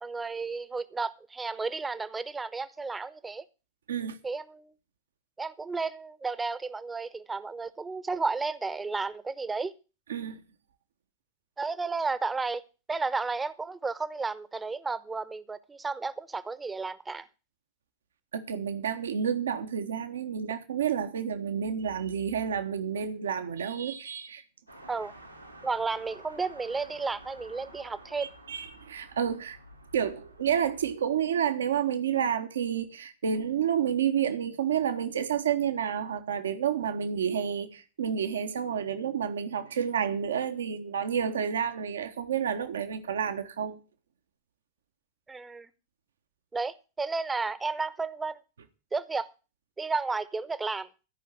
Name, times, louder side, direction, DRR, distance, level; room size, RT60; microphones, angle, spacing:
voice 1, 0.0-3.4 4.2-4.7 5.4-9.7 11.6-12.6 12.9-17.3 24.9-25.1 25.6-28.3 45.3-45.7 46.5-48.4 48.9-49.3 49.8-50.9, right 4 dB, 10° right, 1.0 m, -32 dB
voice 2, 10.1-10.4 18.3-24.4 28.2-29.6 29.9-43.8, right 8 dB, 65° right, 1.2 m, -30 dB
sound 1, 24.7-30.9, right 1 dB, 90° right, 2.3 m, -51 dB
14.0 x 5.6 x 9.1 m
figure-of-eight pair, 90°, 0 cm